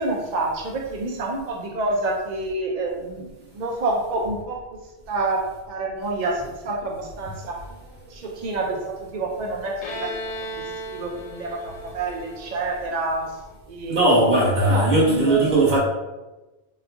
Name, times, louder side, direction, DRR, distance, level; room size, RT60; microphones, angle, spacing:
voice 1, 0.0-4.6 5.1-7.6 8.1-10.2 10.5-13.4 13.7-14.3 14.6-15.5, right 2 dB, 60° right, -1 dB, 0.4 m, -28 dB
Bowed string instrument, 9.8-13.4, equal, 65° left, 0.3 m, -36 dB
voice 2, 13.9-15.8, right 2 dB, 40° right, -6 dB, 1.2 m, -18 dB
3.4 x 3.1 x 2.5 m, 1.1 s
omnidirectional pair, 1.2 m